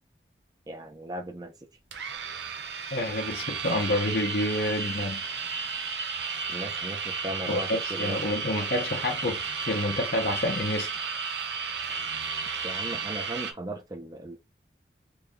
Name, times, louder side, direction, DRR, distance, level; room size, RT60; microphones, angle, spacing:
voice 1, 0.7-1.7 6.5-8.2 12.6-14.4, right 1 dB, 20° right, 0.5 m, -37 dB
sound 1, 1.9-13.5, right 5 dB, 80° right, 0.6 m, -33 dB
voice 2, 2.9-5.2 7.5-10.9, left 1 dB, 60° left, 0.7 m, -28 dB
3.1 x 2.7 x 3.4 m
head